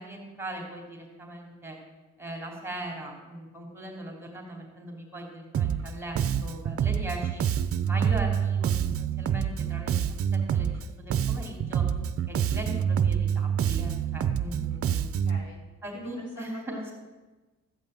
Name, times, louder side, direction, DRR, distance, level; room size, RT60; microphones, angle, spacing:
voice 1, 0.0-1.8 2.2-7.4 7.9-11.9 12.3-15.1 15.8-16.8, right 1 dB, 10° right, 0 dB, 2.9 m, -39 dB
Bass guitar, 5.5-5.9 6.2-10.8 11.1-15.4, right 8 dB, 50° right, 0.7 m, -27 dB
voice 2, 15.0-15.6 15.9-16.9, equal, 70° left, -1 dB, 3.6 m, -44 dB
13.5 x 5.4 x 8.8 m, 1.2 s
cardioid pair, 90°, 30 cm